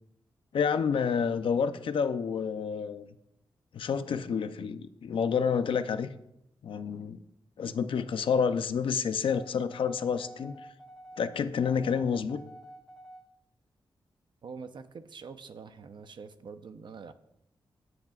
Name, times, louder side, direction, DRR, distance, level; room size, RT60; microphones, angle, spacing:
voice 1, 0.5-3.1 3.7-6.1 6.6-7.2 7.6-10.6 11.2-12.4, left 6 dB, 85° left, 10 dB, 0.6 m, -29 dB
sound 1, 9.3-13.3, right 1 dB, 5° left, 1.7 m, -49 dB
voice 2, 14.4-17.1, right 5 dB, 65° right, 9 dB, 0.8 m, -45 dB
22.5 x 7.9 x 2.4 m, 0.80 s
wide cardioid pair, 125°, 9 cm